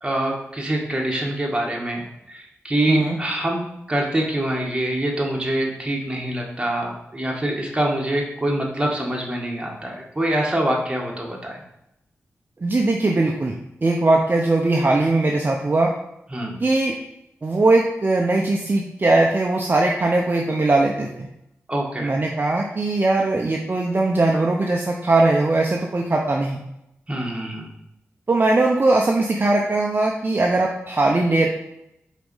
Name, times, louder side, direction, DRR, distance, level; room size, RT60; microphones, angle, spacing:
voice 1, 0.0-11.6 16.3-16.6 21.7-22.1 27.1-27.7, right 1 dB, 20° right, -1 dB, 1.7 m, -25 dB
voice 2, 12.6-15.9 16.6-16.9 17.4-21.3 22.0-26.6 28.3-31.5, right 2 dB, 40° right, 0 dB, 0.7 m, -20 dB
4.6 x 4.2 x 5.5 m, 0.83 s
cardioid pair, 50°, 5 cm